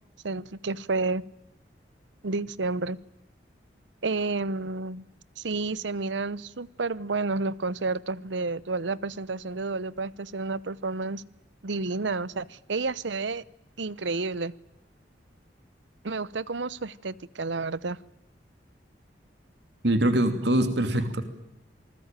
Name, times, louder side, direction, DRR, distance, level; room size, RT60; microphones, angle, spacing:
voice 1, 0.2-1.2 2.2-3.0 4.0-5.1 5.4-11.2 11.6-13.4 13.8-14.5 16.0-18.0, right 3 dB, 85° right, 20 dB, 0.9 m, -30 dB
voice 2, 19.8-21.2, right 1 dB, 70° right, 9 dB, 2.7 m, -23 dB
27.5 x 20.5 x 9.0 m, 0.86 s
head